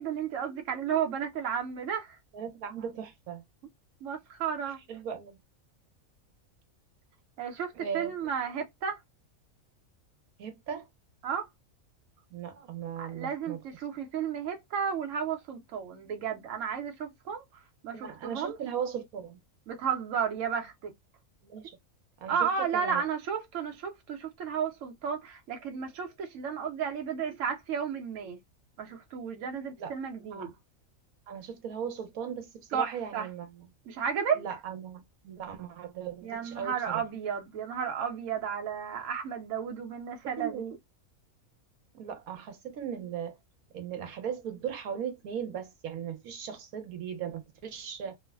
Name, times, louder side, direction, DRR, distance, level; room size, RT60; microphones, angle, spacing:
voice 1, 0.0-2.2 4.0-4.8 7.4-9.0 11.2-11.5 13.0-17.4 17.8-18.6 19.7-20.9 22.3-28.4 28.8-30.5 32.7-33.3 33.9-34.4 36.2-40.7, right 7 dB, 70° right, 1.1 m, -33 dB
voice 2, 2.3-3.4 4.9-5.4 7.7-8.2 10.4-10.9 12.3-13.6 17.9-19.4 21.4-21.8 22.2-23.0 29.8-29.9 30.3-30.5 31.3-33.7 34.4-37.0 40.2-40.7 41.9-43.4 43.7-48.2, right 8 dB, 85° right, 1.2 m, -38 dB
3.1 x 2.1 x 2.3 m
omnidirectional pair, 1.5 m